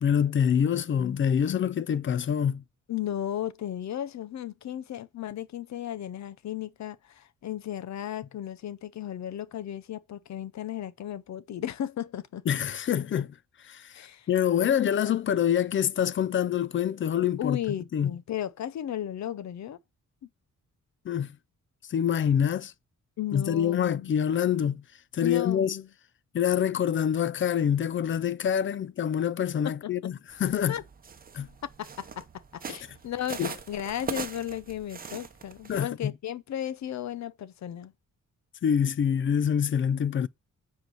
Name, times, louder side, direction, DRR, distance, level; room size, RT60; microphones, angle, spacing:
voice 1, 0.0-2.6 12.5-13.3 13.7-13.9 14.3-17.6 17.9-18.1 21.1-21.3 21.9-22.7 23.3-24.8 25.1-25.8 26.3-30.1 30.4-30.8 31.3-31.5 33.4-33.5 35.7-36.1 38.6-40.3, left 8 dB, 40° left, 0.4 m, -26 dB
voice 2, 2.9-12.4 13.9-14.3 17.4-19.8 23.2-24.1 25.2-25.9 29.6-29.7 30.7-30.8 31.8-32.3 32.5-37.9, left 11 dB, 65° left, 0.7 m, -35 dB
sound 1, 30.3-35.9, right 6 dB, 30° right, 0.9 m, -41 dB
7.9 x 4.6 x 6.3 m
wide cardioid pair, 175°, 31 cm